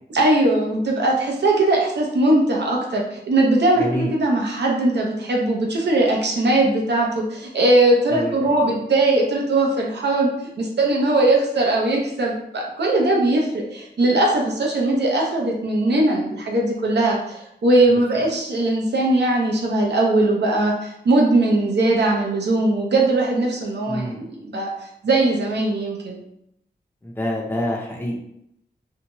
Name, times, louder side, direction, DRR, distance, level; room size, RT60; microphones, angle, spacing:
voice 1, 0.1-10.3 10.6-24.7 25.0-26.2, right 2 dB, 80° right, -1 dB, 0.7 m, -20 dB
voice 2, 3.8-4.1 8.1-8.6 23.9-24.3 27.0-28.2, equal, 10° left, -2 dB, 0.6 m, -27 dB
2.7 x 2.2 x 2.9 m, 0.77 s
wide cardioid pair, 100°, 17 cm